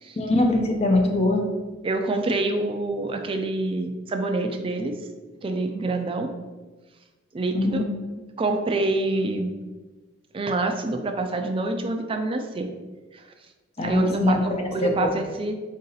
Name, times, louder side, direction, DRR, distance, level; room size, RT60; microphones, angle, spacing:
voice 1, 0.2-1.5 7.5-7.8 13.8-15.1, left 2 dB, 30° left, 3 dB, 0.5 m, -22 dB
voice 2, 1.8-5.0 5.4-6.3 7.3-7.8 8.4-9.5 10.3-12.7 13.1-13.2 13.8-15.5, right 2 dB, 25° right, 5 dB, 0.3 m, -26 dB
3.8 x 2.7 x 3.9 m, 1.3 s
head